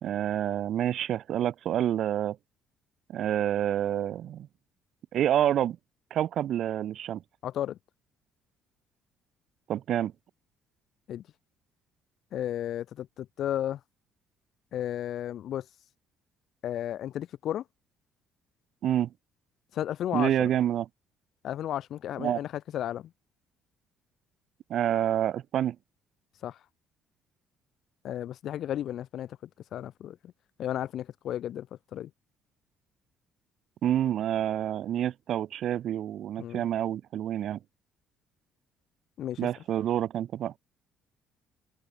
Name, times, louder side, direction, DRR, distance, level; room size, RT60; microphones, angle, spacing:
voice 1, 0.0-2.4 3.1-4.5 5.1-5.8 6.1-7.2 9.7-10.1 18.8-19.1 20.1-20.9 22.2-22.4 24.7-25.8 33.8-37.6 39.4-40.5, right 11 dB, 60° right, 2.0 m, -28 dB
voice 2, 7.4-7.8 11.1-11.2 12.3-13.8 14.7-15.7 16.6-17.6 19.7-20.5 21.4-23.1 26.4-26.6 28.0-30.3 30.6-31.7 31.9-32.1 36.4-36.7 39.2-39.5, left 11 dB, 60° left, 2.4 m, -33 dB
open air
cardioid pair, 120°, 0 cm